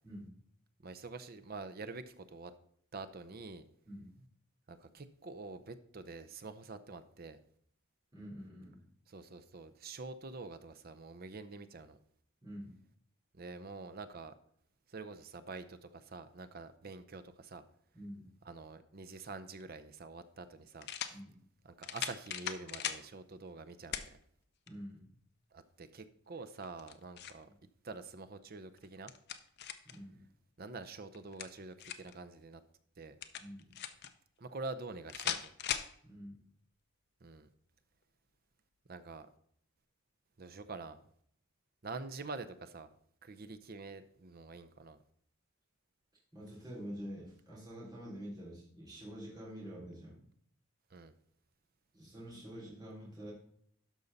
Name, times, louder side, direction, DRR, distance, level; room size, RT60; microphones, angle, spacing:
voice 1, 0.8-2.5 2.9-3.7 4.7-7.4 9.1-12.0 13.3-14.3 14.9-17.6 18.4-21.2 21.6-24.2 25.5-27.5 27.8-29.1 30.6-32.6 33.0-33.1 34.4-35.5 37.2-37.5 38.9-39.3 40.4-41.0 41.8-42.9 43.2-45.0 50.9-51.1, right 3 dB, 45° right, 10 dB, 0.6 m, -46 dB
voice 2, 3.8-4.2 8.1-8.8 12.4-12.8 17.9-18.3 21.1-21.3 24.7-25.0 29.8-30.2 33.4-33.7 36.0-36.4 46.3-50.2 51.9-53.3, equal, 20° right, -7 dB, 3.4 m, -47 dB
sound 1, 19.6-19.7 20.8-21.2 21.8-23.0 23.9-24.1 24.7-24.8 26.6-27.4 28.8-30.0 31.1-32.1 33.2-34.1 35.1-35.9, left 9 dB, 50° left, 0.6 m, -39 dB
12.0 x 5.5 x 4.0 m, 0.65 s
head